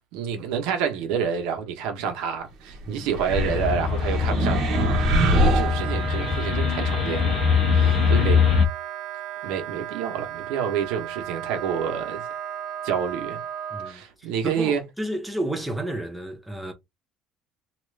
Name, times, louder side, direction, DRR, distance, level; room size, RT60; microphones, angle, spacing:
voice 1, 0.0-4.7 4.9-7.4 7.7-8.4 9.4-12.2 12.8-13.4 13.8-14.8, right 7 dB, 80° right, 1.0 m, -28 dB
sound 1, 3.1-6.4, right 1 dB, 45° right, 0.9 m, -24 dB
sound 2, 3.3-8.7, left 6 dB, 40° left, 0.6 m, -22 dB
Wind instrument woodwind instrument, 4.7-13.9, right 10 dB, 60° right, 0.5 m, -35 dB
voice 2, 13.7-16.7, right 1 dB, 5° right, 0.6 m, -32 dB
3.0 x 2.4 x 3.3 m
cardioid pair, 175°, 0 cm